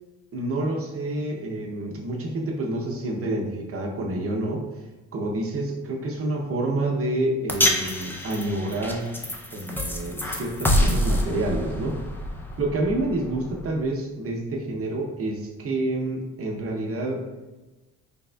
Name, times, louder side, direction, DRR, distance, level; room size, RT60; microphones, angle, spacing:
voice 1, 0.3-4.6 5.1-9.1 9.5-12.0 12.6-17.3, right 2 dB, 50° right, 1 dB, 0.7 m, -28 dB
sound 1, 7.5-13.9, equal, 5° left, 0.4 m, -27 dB
3.4 x 3.3 x 2.2 m, 1.1 s
cardioid pair, 90°, 30 cm